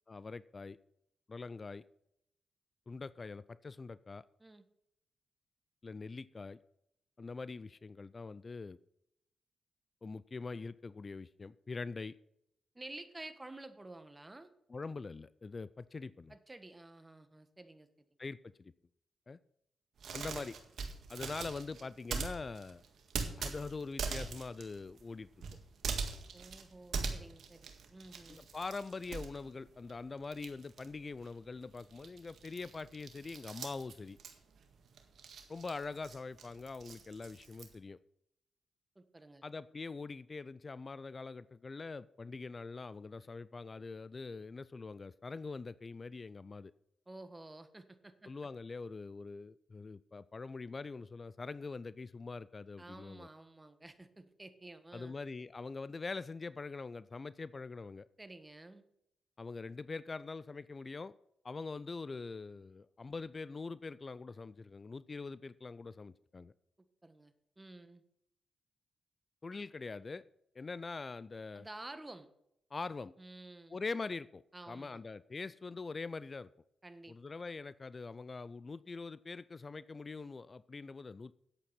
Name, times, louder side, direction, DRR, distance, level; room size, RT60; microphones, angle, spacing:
voice 1, 0.1-0.8 1.3-1.8 2.9-4.2 5.8-6.6 7.2-8.8 10.0-12.2 14.7-16.3 18.2-18.7 19.3-19.4 20.1-20.6 21.1-22.8 23.4-25.3 28.3-34.2 35.5-38.0 39.4-46.7 48.3-53.3 54.9-58.1 59.4-61.1 61.4-66.5 69.4-70.2 70.5-71.7 72.7-73.1 73.7-76.5 77.1-81.3, left 4 dB, 40° left, 18 dB, 0.4 m, -43 dB
voice 2, 12.7-14.5 16.3-18.1 26.3-28.4 38.9-39.5 47.1-48.3 52.8-55.1 58.2-58.8 67.0-68.0 71.5-72.3 73.2-73.8 74.5-75.0 76.8-77.2, right 2 dB, 20° right, 10 dB, 1.5 m, -51 dB
sound 1, 20.0-30.0 30.2-37.7, right 5 dB, 70° right, 1.7 m, -42 dB
9.8 x 8.4 x 5.9 m, 0.78 s
supercardioid pair, 45°, 0 cm